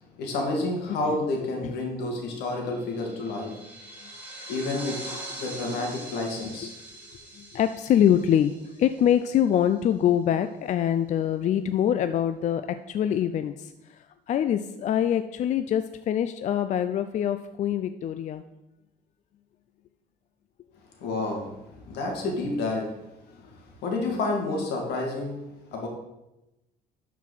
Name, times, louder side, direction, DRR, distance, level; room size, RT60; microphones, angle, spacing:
voice 1, 0.2-3.6 4.5-5.1 5.4-6.7 21.0-23.0 23.8-25.4 25.7-25.9, left 2 dB, 80° left, 1 dB, 2.1 m, -29 dB
sound 1, 2.6-9.5, right 1 dB, 10° right, 2.3 m, -42 dB
voice 2, 7.4-14.0 14.3-18.4, left 10 dB, 45° left, 10 dB, 0.4 m, -24 dB
11.5 x 4.7 x 4.0 m, 0.94 s
cardioid pair, 110°, 17 cm